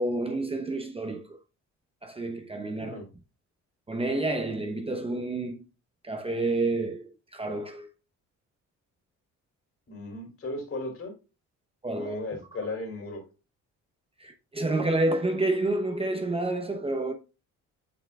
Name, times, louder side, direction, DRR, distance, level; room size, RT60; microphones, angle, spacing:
voice 1, 0.0-1.4 2.0-3.0 3.9-5.6 6.0-7.9 11.8-12.2 14.2-17.1, right 2 dB, 20° right, 0.8 m, -29 dB
voice 2, 2.8-3.1 9.9-11.1 11.9-13.2, left 2 dB, 45° left, 3.4 m, -36 dB
7.7 x 5.6 x 2.3 m
cardioid pair, 90°, 30 cm